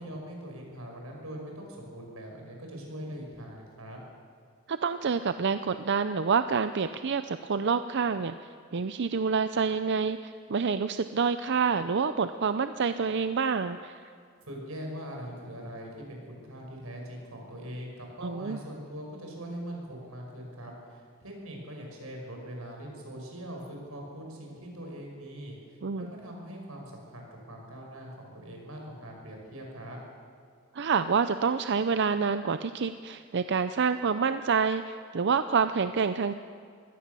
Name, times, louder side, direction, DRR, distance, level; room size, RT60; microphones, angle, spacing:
voice 1, 0.0-4.0 14.4-30.0, equal, 85° right, 1 dB, 6.1 m, -42 dB
voice 2, 4.7-14.0 18.2-18.6 25.8-26.1 30.7-36.3, right 5 dB, 55° right, 11 dB, 0.5 m, -27 dB
24.0 x 17.0 x 6.9 m, 2.1 s
head